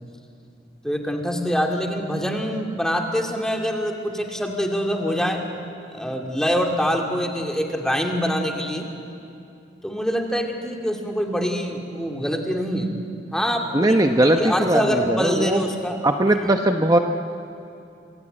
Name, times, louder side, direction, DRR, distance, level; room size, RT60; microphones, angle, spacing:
voice 1, 0.8-5.4 5.9-8.9 9.8-12.9 13.3-14.1 14.4-16.0 16.3-16.4, equal, 5° left, 2 dB, 2.4 m, -25 dB
voice 2, 13.7-15.6 16.0-17.0, right 1 dB, 20° right, 4 dB, 0.9 m, -19 dB
26.5 x 22.0 x 8.9 m, 2.6 s
head